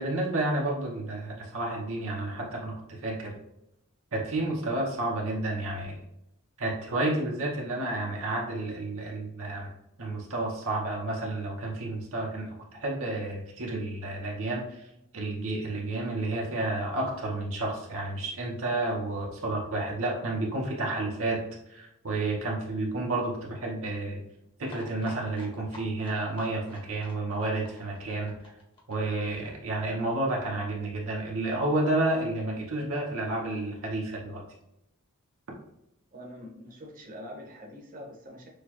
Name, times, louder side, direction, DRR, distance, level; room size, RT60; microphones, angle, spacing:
voice 1, 0.0-3.3 4.1-6.0 6.6-9.7 10.0-14.9 15.1-21.4 21.7-24.2 24.6-28.3 28.9-34.4, right 2 dB, 65° right, -2 dB, 0.9 m, -31 dB
sound 1, 24.7-30.2 30.5-30.6 30.8-30.9 31.1-31.2, left 1 dB, 25° left, 1.1 m, -49 dB
voice 2, 36.1-38.5, equal, 40° right, -1 dB, 1.0 m, -44 dB
6.5 x 2.2 x 3.0 m, 0.85 s
head